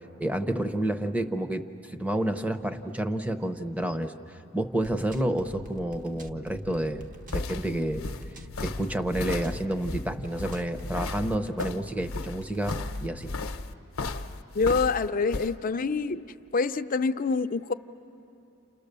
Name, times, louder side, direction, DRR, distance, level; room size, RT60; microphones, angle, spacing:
voice 1, 0.2-7.0 7.3-8.0 8.6-13.3, right 1 dB, 5° right, 9 dB, 0.8 m, -30 dB
sound 1, 4.8-13.5, left 1 dB, 40° right, 1.1 m, -46 dB
sound 2, 6.9-15.5, left 3 dB, 70° left, 0.8 m, -35 dB
voice 2, 14.5-16.2 16.5-17.7, left 4 dB, 40° left, 10 dB, 0.5 m, -26 dB
29.0 x 29.0 x 6.8 m, 3.0 s
head